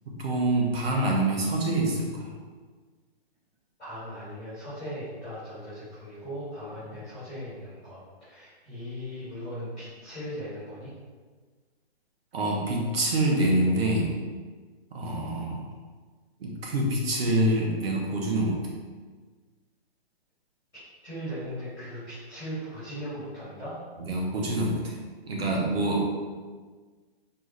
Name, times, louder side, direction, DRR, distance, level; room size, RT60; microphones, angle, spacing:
voice 1, 0.0-2.3 12.3-14.2 14.9-15.6 16.4-18.6 24.0-25.0 25.3-26.0, right 1 dB, 70° right, -1 dB, 1.1 m, -26 dB
voice 2, 3.8-10.9 21.0-23.8, equal, ahead, -35 dB, 0.3 m, -38 dB
4.6 x 2.6 x 3.2 m, 1.5 s
hypercardioid pair, 155°, 32 cm